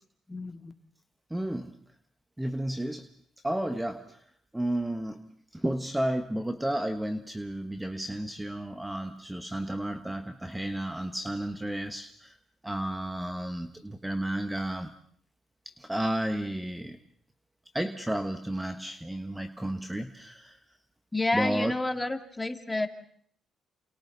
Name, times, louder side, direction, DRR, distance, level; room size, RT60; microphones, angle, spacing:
voice 1, 0.3-0.7 21.1-22.9, left 2 dB, 15° left, 6 dB, 2.4 m, -30 dB
voice 2, 1.3-1.7 2.4-3.1 3.4-4.2 4.5-12.4 12.6-14.9 15.6-17.0 17.7-20.6 21.3-21.7, right 1 dB, 10° right, 7 dB, 1.4 m, -32 dB
28.5 x 28.5 x 4.1 m, 0.63 s
cardioid pair, 90°, 0 cm